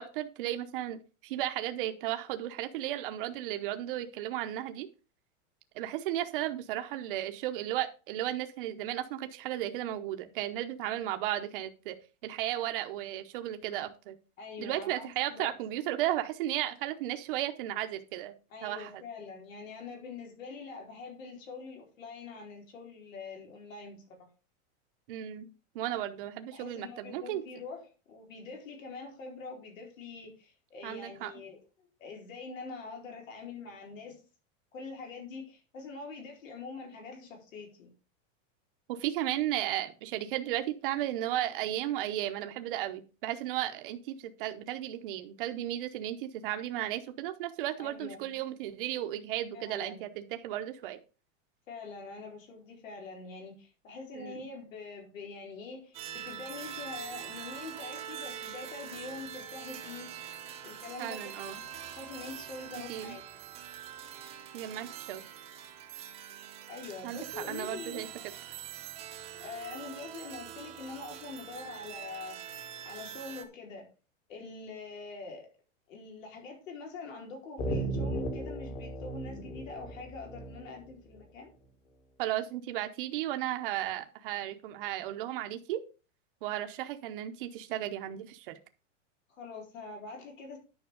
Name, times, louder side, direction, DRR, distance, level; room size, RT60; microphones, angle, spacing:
voice 1, 0.0-4.9 5.7-11.9 12.2-14.1 14.6-18.3 18.6-18.9 25.1-27.4 30.8-31.3 38.9-51.0 54.1-54.4 61.0-61.6 62.9-63.2 64.5-65.2 67.0-68.1 82.2-85.8 86.4-88.6, right 13 dB, 45° right, 7 dB, 0.9 m, -34 dB
voice 2, 14.4-15.5 18.5-24.3 26.5-34.2 34.7-37.9 47.8-48.3 49.5-50.0 51.7-60.1 60.6-61.5 61.9-63.2 66.7-68.1 69.4-72.4 72.8-73.9 74.3-75.5 75.9-81.5 89.4-90.6, left 4 dB, 85° left, 1 dB, 4.4 m, -44 dB
sound 1, 55.9-73.4, right 10 dB, 15° right, 0.8 m, -44 dB
sound 2, 77.6-81.2, right 1 dB, 25° left, 1.5 m, -36 dB
9.7 x 5.8 x 5.1 m, 0.33 s
supercardioid pair, 175°, 38 cm